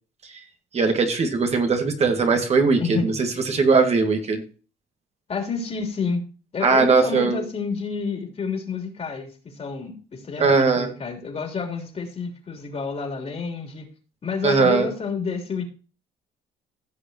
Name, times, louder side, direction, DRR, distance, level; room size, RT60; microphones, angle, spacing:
voice 1, 0.7-4.4 6.6-7.4 10.4-10.9 14.4-14.9, right 4 dB, 40° right, 5 dB, 1.9 m, -20 dB
voice 2, 2.8-3.1 5.3-6.2 6.5-13.9 14.2-15.6, left 5 dB, 35° left, 3 dB, 3.3 m, -29 dB
16.0 x 6.8 x 2.9 m, 0.36 s
cardioid pair, 110°, 17 cm